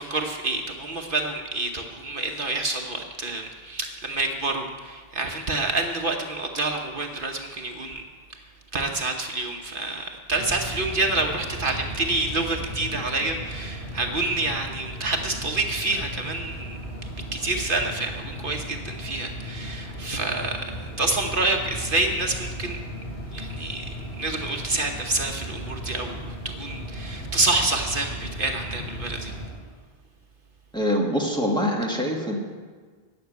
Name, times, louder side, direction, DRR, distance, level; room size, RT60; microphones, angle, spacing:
voice 1, 0.0-8.0 8.7-16.8 17.3-22.8 23.3-26.2 26.6-29.3, right 2 dB, 60° right, 2 dB, 1.2 m, -28 dB
sound 1, 10.3-29.5, equal, 75° left, 4.4 m, -36 dB
voice 2, 30.7-32.4, equal, 5° left, -2 dB, 1.9 m, -24 dB
14.5 x 6.2 x 9.4 m, 1.5 s
omnidirectional pair, 1.0 m